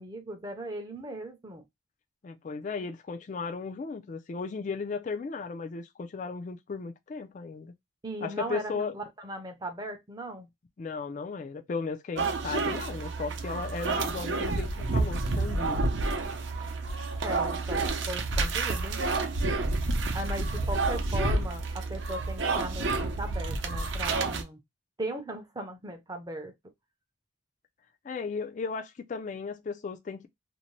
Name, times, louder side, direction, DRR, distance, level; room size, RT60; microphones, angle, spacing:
voice 1, 0.0-1.6 8.0-10.5 17.2-19.0 20.1-24.6 25.0-26.5, right 1 dB, 20° right, 0.5 m, -38 dB
voice 2, 2.2-7.7 8.2-9.0 10.8-15.8 28.0-30.3, left 4 dB, 40° left, 0.3 m, -35 dB
sound 1, 12.2-24.4, right 3 dB, 65° right, 0.6 m, -29 dB
2.6 x 2.1 x 3.0 m
head